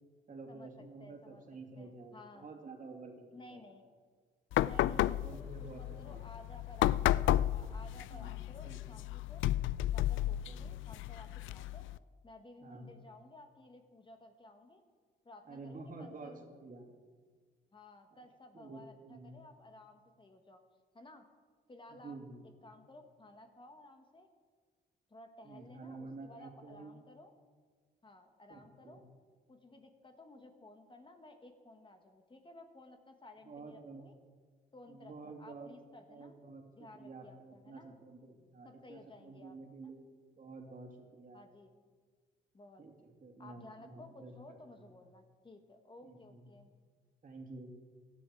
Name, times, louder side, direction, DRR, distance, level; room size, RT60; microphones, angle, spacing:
voice 1, 0.3-3.6 4.7-6.2 8.1-8.3 8.6-9.0 10.5-10.7 12.6-12.9 15.4-16.9 18.1-18.2 18.5-19.4 21.9-22.5 25.4-26.9 28.5-29.0 33.4-34.0 34.9-35.7 36.1-40.0 40.4-41.4 42.8-44.3 44.7-44.9 46.0-46.5 47.2-47.7, right 3 dB, 40° right, 2 dB, 2.8 m, -50 dB
voice 2, 1.0-1.4 1.8-2.5 3.3-3.9 4.6-9.5 9.9-11.9 12.2-14.8 15.2-16.4 17.7-20.6 20.9-21.3 21.7-22.2 22.6-24.3 25.1-27.3 28.0-29.0 29.5-34.1 34.7-36.4 36.7-37.9 38.6-39.6 39.8-39.9 41.3-41.7 42.5-42.8 43.4-46.7, left 2 dB, 25° left, 5 dB, 1.4 m, -55 dB
sound 1, 4.5-12.0, left 13 dB, 80° left, 0.4 m, -33 dB
17.0 x 12.5 x 4.7 m, 1.5 s
cardioid pair, 90°, 20 cm